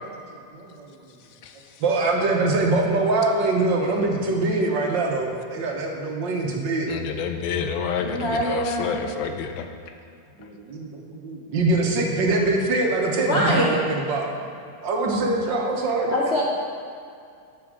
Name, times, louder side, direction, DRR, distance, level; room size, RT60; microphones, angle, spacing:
voice 1, 0.5-0.9 1.8-6.9 10.4-14.4 14.8-16.1, right 2 dB, 60° right, 0 dB, 1.6 m, -23 dB
voice 2, 6.9-9.7, left 6 dB, 75° left, 6 dB, 1.2 m, -28 dB
voice 3, 8.0-9.0 13.3-13.7 16.1-16.4, equal, 55° left, -3 dB, 0.7 m, -24 dB
13.0 x 6.3 x 3.7 m, 2.4 s
omnidirectional pair, 2.4 m